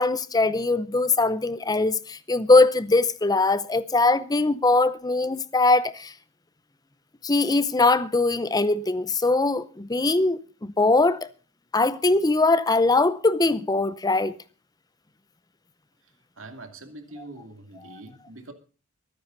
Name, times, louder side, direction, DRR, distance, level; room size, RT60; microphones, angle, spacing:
voice 1, 0.0-6.1 7.2-11.3 11.7-14.4 17.2-17.3 17.8-18.0, left 3 dB, 15° left, 0.6 m, -21 dB
voice 2, 16.4-18.5, right 2 dB, 60° right, 2.5 m, -43 dB
23.5 x 9.9 x 4.0 m
head